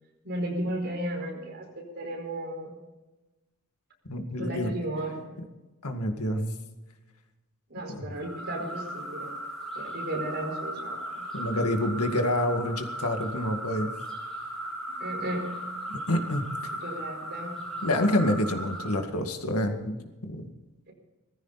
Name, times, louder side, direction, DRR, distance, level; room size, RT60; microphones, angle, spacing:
voice 1, 0.2-2.8 4.4-5.4 7.7-9.3 9.7-11.3 15.0-15.6 16.8-17.6 20.9-21.0, right 1 dB, 50° right, 1 dB, 4.8 m, -34 dB
voice 2, 4.1-4.7 5.8-6.6 7.9-8.1 11.3-13.9 15.9-16.5 17.8-20.0 20.2-20.5, left 1 dB, 85° left, 5 dB, 2.1 m, -27 dB
sound 1, 8.2-19.1, right 1 dB, ahead, 4.2 m, -37 dB
19.0 x 15.0 x 4.1 m, 1.1 s
head